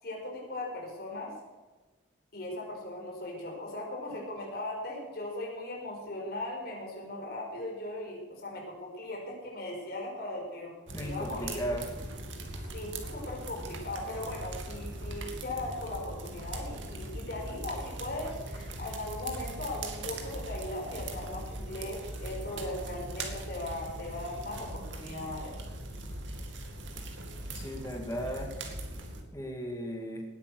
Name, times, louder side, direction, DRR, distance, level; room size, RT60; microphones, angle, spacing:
voice 1, 0.0-1.3 2.3-11.6 12.7-25.5, left 1 dB, 55° left, -2 dB, 5.5 m, -38 dB
voice 2, 10.9-11.9 27.5-28.5 29.3-30.3, equal, 15° left, 1 dB, 2.4 m, -36 dB
sound 1, 10.9-29.2, right 1 dB, 75° right, 2.4 m, -40 dB
19.0 x 9.0 x 6.5 m, 1.2 s
head